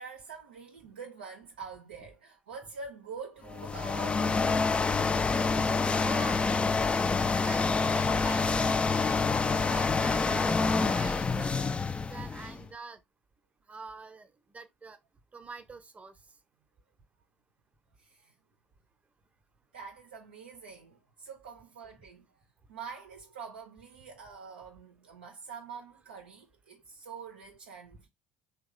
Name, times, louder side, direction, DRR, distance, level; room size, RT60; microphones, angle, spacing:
voice 1, 0.0-5.0 18.0-18.3 19.7-28.1, right 5 dB, 80° right, 0.5 m, -46 dB
sound 1, 3.5-12.7, left 4 dB, 20° left, 0.3 m, -27 dB
voice 2, 6.0-6.6 7.1-13.0 13.7-15.0 15.3-16.2, right 4 dB, 25° right, 0.7 m, -45 dB
3.0 x 2.2 x 3.7 m
figure-of-eight pair, 60°, 5 cm